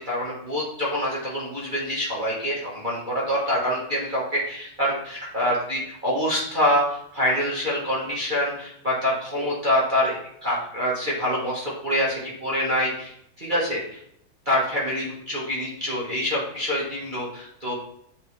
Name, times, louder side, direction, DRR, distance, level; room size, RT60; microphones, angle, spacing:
voice 1, 0.0-13.1 13.4-14.0 14.4-17.7, equal, 25° right, -7 dB, 1.3 m, -26 dB
9.3 x 3.4 x 3.2 m, 0.71 s
omnidirectional pair, 2.3 m